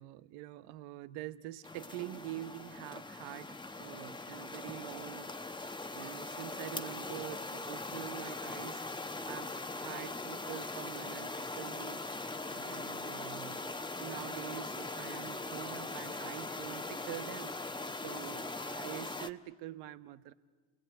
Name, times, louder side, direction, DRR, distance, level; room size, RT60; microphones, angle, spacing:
voice 1, 0.0-5.3 5.9-20.3, right 14 dB, 85° right, 13 dB, 0.9 m, -46 dB
sound 1, 1.6-19.3, left 2 dB, 10° left, 1.0 m, -41 dB
30.0 x 20.5 x 8.9 m, 1.4 s
supercardioid pair, 80°, 37 cm